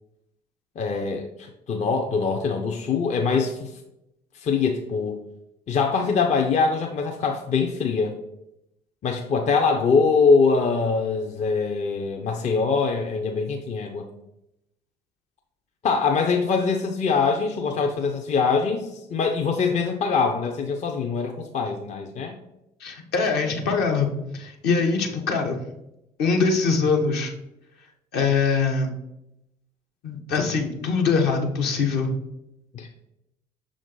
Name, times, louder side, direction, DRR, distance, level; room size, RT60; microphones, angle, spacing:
voice 1, 0.8-3.7 4.4-5.2 5.7-8.2 9.0-14.1 15.8-22.4 32.7-32.9, left 5 dB, 40° left, 3 dB, 0.5 m, -23 dB
voice 2, 22.8-24.1 24.3-25.6 26.2-27.3 28.1-28.9 30.0-32.1, left 4 dB, 60° left, 3 dB, 0.8 m, -23 dB
5.8 x 2.5 x 3.7 m, 0.85 s
figure-of-eight pair, 50°, 19 cm